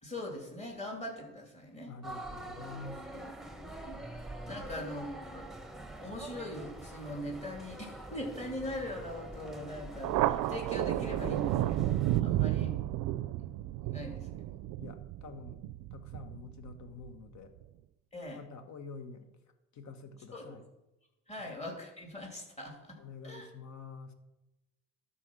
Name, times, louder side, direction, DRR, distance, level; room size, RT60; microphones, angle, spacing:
voice 1, 0.0-1.9 3.6-4.0 4.5-5.5 6.0-12.7 13.4-13.5 13.9-14.3 18.1-18.4 20.3-20.5 21.3-23.0 23.2-23.5, left 1 dB, 20° left, 0 dB, 2.9 m, -41 dB
voice 2, 1.9-3.4 4.5-4.8 12.3-12.6 14.8-15.6 15.9-17.5 18.3-19.4 19.7-20.7 21.4-21.5 23.0-24.1, left 4 dB, 65° left, 8 dB, 1.2 m, -48 dB
sound 1, 2.0-12.2, right 2 dB, ahead, 0.9 m, -45 dB
Thunder, 10.0-17.1, right 14 dB, 90° right, 0.5 m, -32 dB
12.5 x 4.3 x 6.2 m, 0.96 s
cardioid pair, 90°, 30 cm